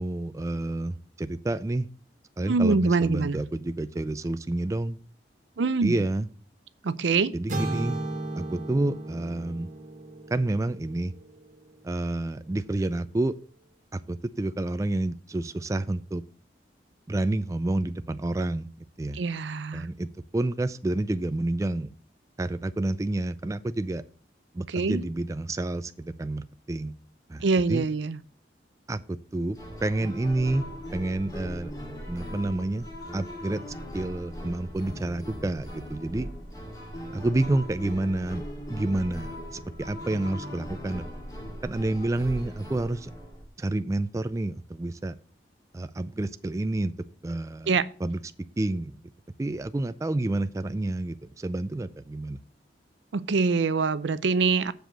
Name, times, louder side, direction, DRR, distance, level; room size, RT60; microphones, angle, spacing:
voice 1, 0.0-1.9 2.4-5.0 5.8-6.3 7.3-8.0 8.4-9.7 10.3-11.1 11.8-13.4 13.9-16.2 17.1-18.7 19.0-19.2 19.7-21.9 22.4-24.0 24.5-26.9 27.3-27.9 28.9-30.6 30.9-31.7 32.1-32.8 33.1-33.6 33.9-36.3 37.1-38.4 38.7-41.1 41.6-43.1 43.6-45.1 45.7-46.9 47.2-47.8 48.0-48.2 48.6-49.0 49.4-52.4, right 2 dB, 15° right, 0.3 m, -29 dB
voice 2, 2.5-3.4 5.6-5.9 6.8-7.3 19.1-19.9 24.7-25.0 27.4-28.2 47.7-47.9 53.1-54.7, right 4 dB, 85° right, 0.5 m, -24 dB
sound 1, 7.5-11.5, right 1 dB, 45° right, 1.4 m, -35 dB
sound 2, 29.5-43.5, equal, 20° left, 2.1 m, -39 dB
7.6 x 5.0 x 6.6 m
head